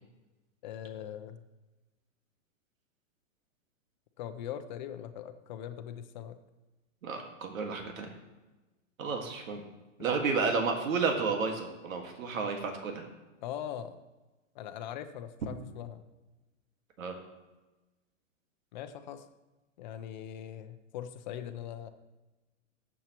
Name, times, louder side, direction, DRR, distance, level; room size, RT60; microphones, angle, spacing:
voice 1, 0.6-1.4 4.2-6.4 13.4-14.0 14.5-16.0 18.7-19.2 19.8-21.9, left 10 dB, 35° left, 8 dB, 0.7 m, -41 dB
voice 2, 7.0-8.1 9.0-9.6 10.0-13.1 17.0-17.2, right 4 dB, 90° right, 3 dB, 2.0 m, -31 dB
19.5 x 7.4 x 3.0 m, 1.1 s
supercardioid pair, 170°, 39 cm